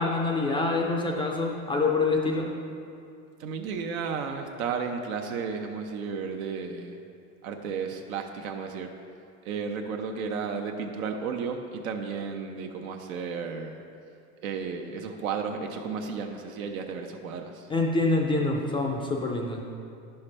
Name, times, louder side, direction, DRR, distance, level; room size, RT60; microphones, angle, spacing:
voice 1, 0.0-2.5 17.7-19.6, left 3 dB, 15° left, 0 dB, 0.4 m, -26 dB
voice 2, 3.4-7.0 7.4-8.9 9.4-13.8 14.4-17.7, right 5 dB, 80° right, 3 dB, 0.8 m, -33 dB
9.9 x 5.8 x 3.3 m, 2.5 s
supercardioid pair, 115°, 41 cm